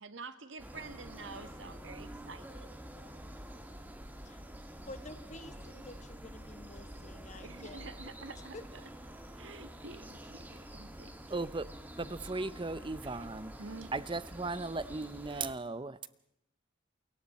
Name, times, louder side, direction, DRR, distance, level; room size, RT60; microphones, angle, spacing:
voice 1, 0.0-2.7 7.3-8.6 8.8-8.9 9.4-11.1 13.0-13.2 13.6-13.9 15.3-15.5, right 3 dB, 80° right, 11 dB, 1.5 m, -48 dB
sound 1, 0.6-15.5, equal, 10° right, 1.8 m, -48 dB
voice 2, 4.8-8.1 8.5-8.6, left 2 dB, 40° left, 9 dB, 1.8 m, -50 dB
voice 3, 11.3-11.7 12.0-13.5 13.9-16.1, right 3 dB, 25° right, 15 dB, 0.7 m, -37 dB
28.5 x 22.5 x 4.3 m, 0.77 s
head